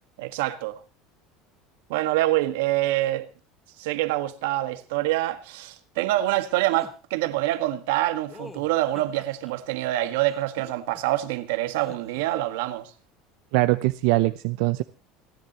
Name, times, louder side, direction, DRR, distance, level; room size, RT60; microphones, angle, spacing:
voice 1, 0.2-0.8 1.9-3.3 3.8-12.9, right 15 dB, 90° right, 1.6 m, -26 dB
sound 1, 6.7-6.9 8.3-9.5 10.2-11.2 11.8-12.3, left 3 dB, 15° left, 1.1 m, -46 dB
voice 2, 13.5-14.8, right 20 dB, 70° right, 0.6 m, -22 dB
29.0 x 11.0 x 3.0 m
cardioid pair, 165°, 0 cm